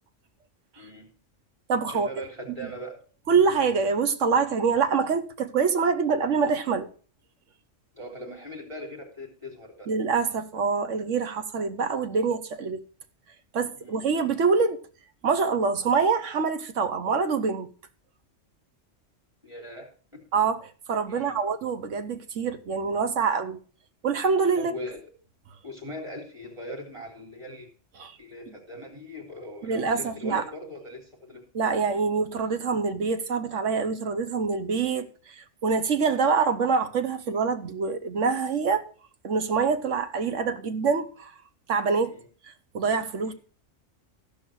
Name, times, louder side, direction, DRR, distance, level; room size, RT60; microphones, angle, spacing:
voice 1, 0.8-1.1 1.9-3.0 7.9-9.9 13.8-14.0 19.4-20.2 21.1-21.4 24.6-25.0 25.6-27.7 28.2-31.4 42.1-42.3 43.3-43.4, left 1 dB, 25° right, 3.7 m, -40 dB
voice 2, 1.7-2.1 3.3-6.9 9.9-12.8 13.5-14.8 15.2-17.7 20.3-23.6 24.0-24.7 28.0-28.2 29.6-30.4 31.5-38.8 39.2-41.3 41.7-42.2 42.7-43.3, right 5 dB, 75° right, 1.4 m, -25 dB
14.5 x 5.5 x 6.2 m
omnidirectional pair, 1.3 m